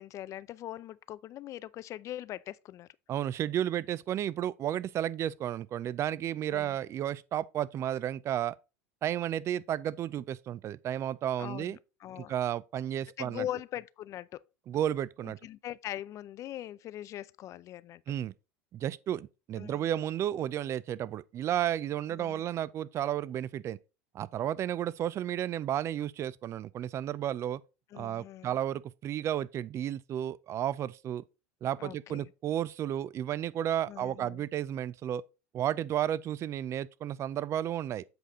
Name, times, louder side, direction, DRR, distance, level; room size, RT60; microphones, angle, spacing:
voice 1, 0.0-2.9 6.5-6.8 11.4-12.3 13.2-14.4 15.2-18.0 19.6-19.9 22.2-22.4 27.9-28.6 31.8-32.3 33.9-34.5, left 12 dB, 45° left, 0.4 m, -41 dB
voice 2, 3.1-8.5 9.0-11.8 12.2-13.5 14.7-15.4 18.1-18.3 18.7-23.8 24.1-27.6 27.9-31.2 31.6-35.2 35.5-38.0, right 11 dB, 40° right, 0.5 m, -32 dB
7.9 x 4.8 x 3.8 m
hypercardioid pair, 95°, 8 cm